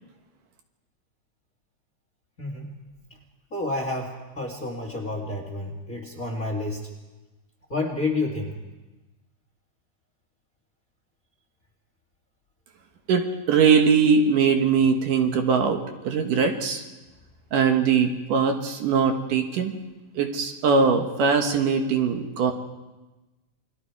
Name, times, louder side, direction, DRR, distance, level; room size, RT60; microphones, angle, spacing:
voice 1, 2.4-2.7 3.5-6.8 7.7-8.5, left 2 dB, 30° left, 2 dB, 2.1 m, -29 dB
voice 2, 13.1-15.8 16.0-16.8 17.5-19.7 20.2-22.5, right 5 dB, 70° right, 5 dB, 2.9 m, -21 dB
28.5 x 21.0 x 4.8 m, 1.1 s
omnidirectional pair, 4.0 m